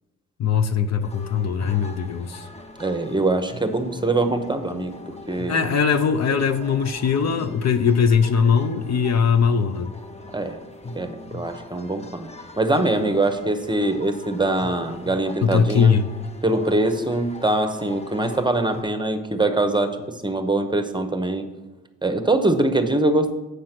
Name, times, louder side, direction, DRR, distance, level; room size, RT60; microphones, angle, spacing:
voice 1, 0.4-2.5 5.5-9.9 15.4-16.1, left 6 dB, 55° left, 8 dB, 0.7 m, -20 dB
sound 1, 1.0-18.8, left 2 dB, 20° left, 1.0 m, -41 dB
voice 2, 2.8-5.7 10.3-10.6 10.9-12.3 12.6-15.9 16.4-21.5 22.0-23.3, right 2 dB, 15° right, 8 dB, 0.9 m, -23 dB
7.5 x 6.7 x 5.9 m, 1.1 s
cardioid pair, 70°, 32 cm